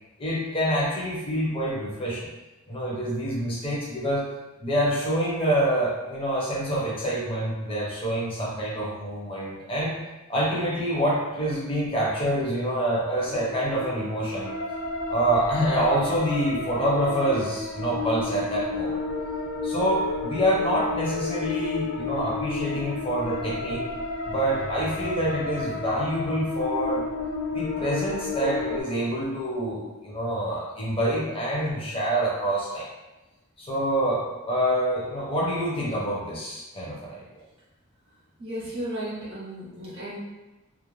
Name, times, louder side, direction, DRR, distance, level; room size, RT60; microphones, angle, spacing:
voice 1, 0.2-2.3 2.7-4.3 4.6-10.0 10.3-14.5 15.1-19.0 19.6-23.8 24.3-27.0 27.5-32.9 33.6-37.2, right 1 dB, 25° left, -5 dB, 0.6 m, -26 dB
sound 1, 13.3-28.8, left 3 dB, 55° left, 0.3 m, -32 dB
voice 2, 38.4-40.2, right 1 dB, 55° right, -9 dB, 0.7 m, -34 dB
2.4 x 2.1 x 3.0 m, 1.1 s
head